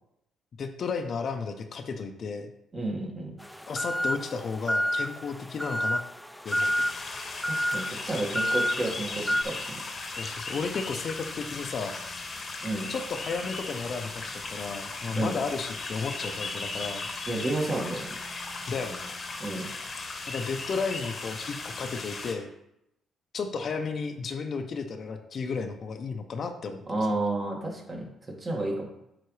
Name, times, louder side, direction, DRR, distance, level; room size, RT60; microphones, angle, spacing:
voice 1, 0.6-2.5 3.7-6.0 6.4-6.8 10.2-11.9 12.9-17.0 18.7-19.1 20.3-22.5 23.3-27.1, left 5 dB, 55° left, 6 dB, 0.6 m, -33 dB
voice 2, 2.7-3.3 7.5-9.8 12.6-12.9 15.1-15.4 17.3-18.2 19.4-19.7 26.9-28.1 28.4-28.9, right 2 dB, 30° right, -1 dB, 1.9 m, -31 dB
sound 1, 3.4-9.4, equal, 5° left, 0.4 m, -30 dB
sound 2, 6.5-22.3, left 3 dB, 40° left, 1.1 m, -37 dB
9.1 x 4.0 x 3.2 m, 0.81 s
cardioid pair, 90°, 0 cm